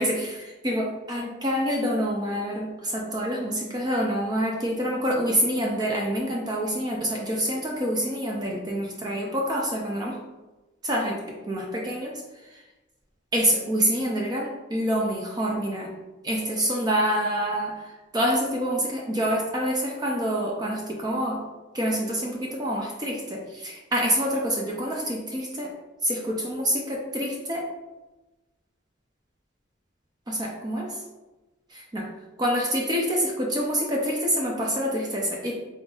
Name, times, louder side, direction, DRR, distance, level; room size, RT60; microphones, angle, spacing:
voice 1, 0.0-10.2 10.8-11.2 11.5-12.1 12.4-12.6 13.3-15.9 16.2-21.4 21.7-25.7 26.0-27.6 30.3-31.0 31.7-32.1 32.4-35.5, equal, 20° right, -2 dB, 0.4 m, -27 dB
3.8 x 3.8 x 2.4 m, 1.1 s
head